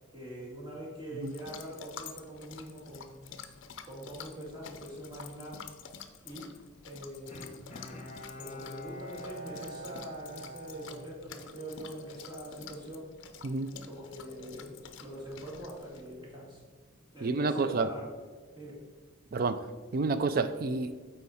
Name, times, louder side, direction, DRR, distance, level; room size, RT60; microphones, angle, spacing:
voice 1, 0.1-3.3 3.8-5.7 6.2-6.5 6.8-7.6 8.4-13.1 13.7-16.6 16.9-18.1 18.5-18.8, right 1 dB, 20° right, -5 dB, 2.1 m, -43 dB
sound 1, 1.2-16.1, left 7 dB, 60° left, 0.5 m, -49 dB
Bowed string instrument, 7.3-11.8 12.2-12.3, equal, 35° left, 0.9 m, -45 dB
voice 2, 17.2-17.9 19.3-19.7 19.9-21.0, right 3 dB, 45° right, 12 dB, 0.4 m, -29 dB
8.2 x 4.5 x 4.2 m, 1.4 s
head